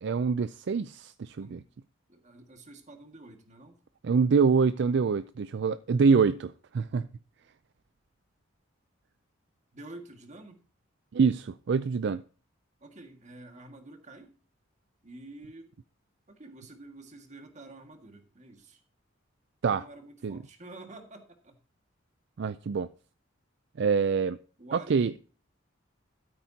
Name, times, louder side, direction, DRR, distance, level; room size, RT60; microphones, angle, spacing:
voice 1, 0.0-1.6 4.0-7.1 11.1-12.2 19.6-19.8 20.2-20.4 22.4-22.9 23.8-24.4 24.7-25.2, right 5 dB, 60° right, 0.4 m, -25 dB
voice 2, 2.1-3.8 9.7-10.6 12.8-14.3 15.0-15.8 16.3-18.8 19.6-21.6 24.6-25.2, right 2 dB, 40° right, 1.9 m, -49 dB
13.0 x 8.8 x 2.8 m
head